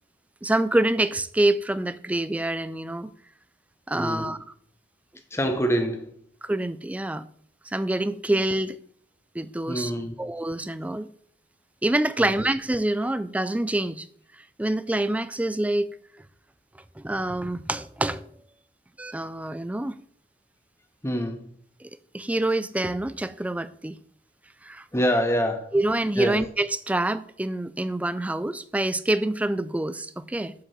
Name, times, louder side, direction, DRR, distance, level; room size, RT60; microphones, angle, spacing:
voice 1, 0.4-3.1 3.9-4.4 6.4-7.2 7.6-8.8 9.3-9.9 10.2-11.1 11.8-14.1 14.6-16.0 17.0-18.3 19.0-20.0 21.8-24.0 24.6-24.8 25.7-30.5, right 1 dB, 10° right, 0.3 m, -26 dB
voice 2, 3.9-4.4 5.3-6.2 9.7-10.1 12.2-12.3 21.0-21.5 24.9-25.7 26.2-26.4, equal, 15° left, 1.0 m, -26 dB
7.3 x 4.9 x 6.7 m
head